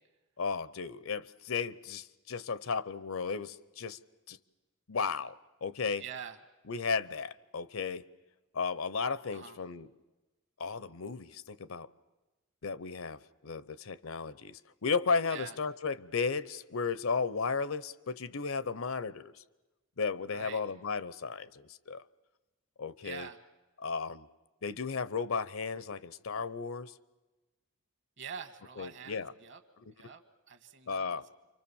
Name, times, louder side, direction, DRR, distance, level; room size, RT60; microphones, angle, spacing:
voice 1, 0.4-4.0 4.3-4.4 4.9-6.0 6.7-8.1 8.5-9.9 10.6-11.9 12.6-19.4 20.0-22.0 22.8-23.3 23.8-24.3 24.6-27.0 28.8-29.3 29.9-30.0 30.9-31.3, left 5 dB, 70° left, 0.8 m, -34 dB
voice 2, 6.0-6.4 9.3-9.6 15.3-15.6 20.3-20.6 23.0-23.4 28.2-29.6 30.0-30.2 30.5-31.2, right 7 dB, 55° right, 1.7 m, -45 dB
29.0 x 24.5 x 7.2 m
head